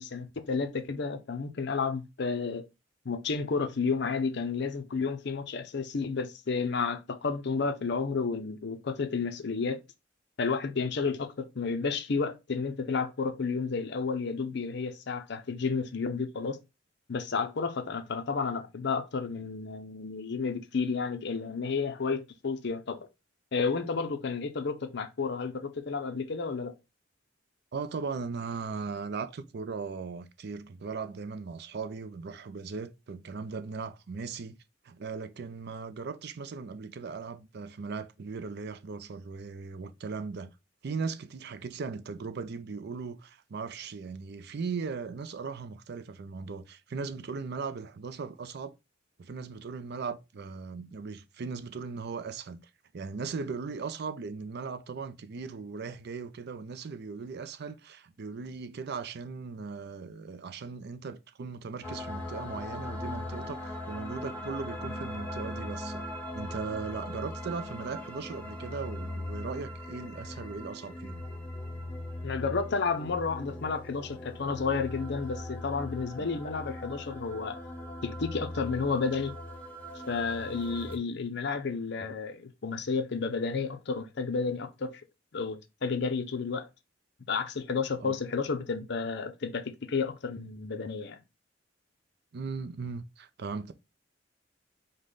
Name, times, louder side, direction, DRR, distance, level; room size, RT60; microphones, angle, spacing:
voice 1, 0.0-2.6 3.1-9.8 10.4-16.6 17.1-23.1 23.5-26.7 72.2-77.6 78.0-79.4 80.1-84.9 85.3-86.7 87.3-91.2, left 4 dB, 65° left, 0.6 m, -31 dB
voice 2, 27.7-34.6 34.8-40.5 40.8-48.8 49.2-52.6 52.9-66.0 66.3-71.2 76.2-76.3 88.0-88.1 92.3-93.7, right 4 dB, 60° right, 0.4 m, -38 dB
sound 1, 61.8-81.0, left 1 dB, 10° left, 1.0 m, -39 dB
5.2 x 2.2 x 3.8 m
head